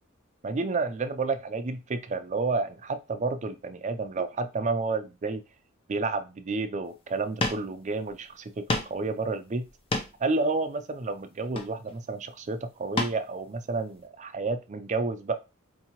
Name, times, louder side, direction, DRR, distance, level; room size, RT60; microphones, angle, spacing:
voice 1, 0.4-5.4 5.9-8.5 8.8-9.7 10.2-15.3, right 3 dB, 35° right, 9 dB, 0.4 m, -30 dB
sound 1, 7.1-7.2 7.4-7.7 8.1-8.2 8.7-9.0 9.7-10.3 11.4-12.0 13.0-13.2 13.7-13.8, left 2 dB, 25° left, 0.6 m, -30 dB
4.5 x 2.8 x 2.9 m, 0.27 s
head